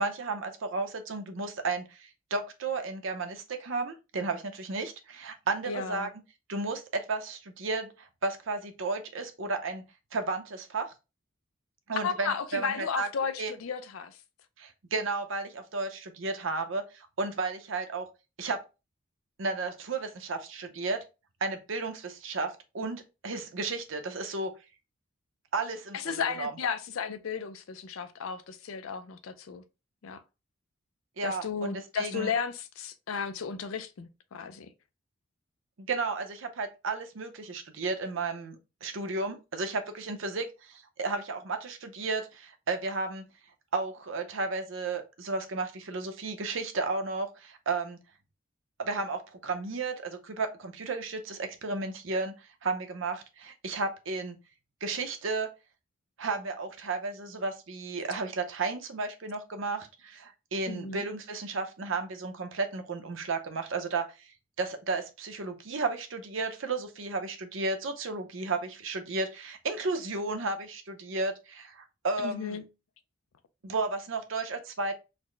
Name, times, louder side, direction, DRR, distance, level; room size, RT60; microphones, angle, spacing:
voice 1, 0.0-6.1 6.5-9.8 10.1-10.9 11.9-13.1 13.4-13.5 14.6-18.1 18.4-18.6 19.4-21.0 21.4-24.5 25.5-26.5 31.2-32.3 35.8-43.2 43.7-48.0 48.8-52.3 52.6-54.4 54.8-55.5 56.2-64.1 64.6-72.6 73.6-74.9, right 3 dB, 70° right, 0.7 m, -33 dB
voice 2, 5.7-6.1 12.0-14.2 25.9-29.6 30.0-30.2 31.2-34.7 60.7-61.0 72.2-72.6, left 6 dB, 85° left, 0.4 m, -34 dB
4.0 x 2.1 x 3.2 m
head